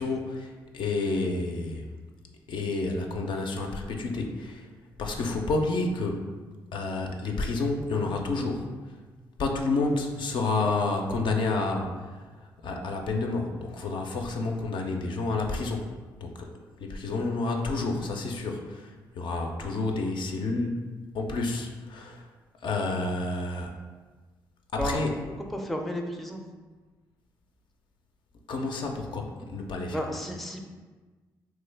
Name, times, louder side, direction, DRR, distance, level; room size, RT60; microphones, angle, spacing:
voice 1, 0.0-1.9 2.5-4.7 5.0-6.3 6.7-8.7 9.4-12.2 12.6-15.9 16.2-16.5 16.8-20.8 21.1-22.2 22.6-23.7 24.7-25.1 28.5-30.2, left 3 dB, 60° left, 2 dB, 0.4 m, -29 dB
voice 2, 25.5-26.4 29.9-30.7, equal, ahead, 2 dB, 0.4 m, -32 dB
3.0 x 2.2 x 3.3 m, 1.3 s
supercardioid pair, 55°, 9 cm